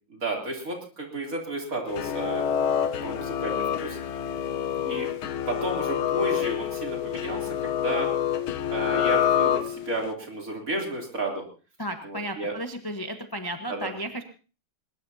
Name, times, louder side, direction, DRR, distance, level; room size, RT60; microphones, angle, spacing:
voice 1, 0.1-2.4 3.0-4.0 4.9-5.1 5.5-8.1 8.7-11.4 12.0-12.5 13.7-13.9, right 2 dB, 40° right, 0 dB, 3.6 m, -32 dB
sound 1, 1.9-10.1, left 9 dB, 80° left, 1.8 m, -27 dB
voice 2, 11.8-14.2, right 1 dB, 15° left, 5 dB, 0.9 m, -34 dB
21.0 x 20.0 x 2.8 m, 0.36 s
omnidirectional pair, 2.2 m